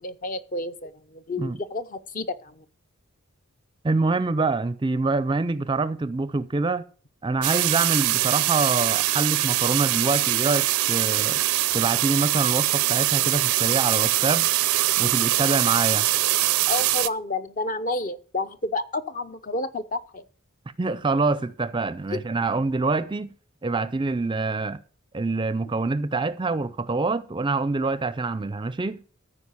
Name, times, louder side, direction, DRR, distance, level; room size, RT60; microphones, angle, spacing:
voice 1, 0.0-2.6 16.7-20.2 22.1-22.2, left 2 dB, 40° left, 0.7 m, -30 dB
voice 2, 3.8-6.9 7.2-11.4 11.7-14.5 15.0-16.1 20.8-23.3 23.6-24.8 25.1-29.0, right 3 dB, 20° right, 0.4 m, -25 dB
sound 1, 7.4-17.1, right 15 dB, 90° right, 0.5 m, -23 dB
14.0 x 4.8 x 7.3 m
head